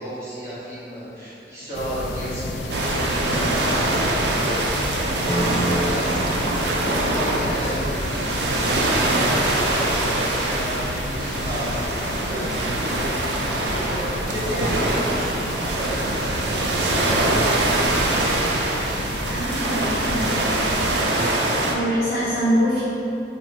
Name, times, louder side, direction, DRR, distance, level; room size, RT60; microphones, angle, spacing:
voice 1, 0.0-6.2 6.5-13.1 13.7-15.3 15.6-17.4 18.1-18.4, equal, 15° right, -12 dB, 1.0 m, -32 dB
sound 1, 1.7-21.1, left 1 dB, 80° left, 0.3 m, -31 dB
sound 2, 2.7-21.7, right 2 dB, 75° right, 0.4 m, -24 dB
sound 3, 5.2-8.1, right 1 dB, 25° left, 0.7 m, -30 dB
voice 2, 19.3-20.5 21.7-22.8, equal, 60° left, -10 dB, 1.2 m, -24 dB
2.8 x 2.4 x 4.0 m, 2.9 s
head